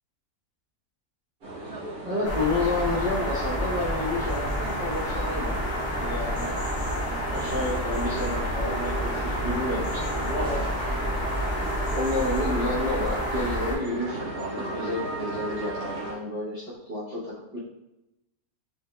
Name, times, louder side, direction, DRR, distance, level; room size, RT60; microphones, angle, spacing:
sound 1, 1.4-16.1, right 2 dB, 85° right, 1.9 m, -37 dB
voice 1, 2.0-5.6 6.0-6.5 7.3-10.6 11.9-17.6, left 1 dB, 30° right, -10 dB, 1.0 m, -30 dB
sound 2, 2.2-13.8, equal, 55° left, 1.4 m, -29 dB
5.8 x 3.5 x 2.3 m, 0.94 s
omnidirectional pair, 1.5 m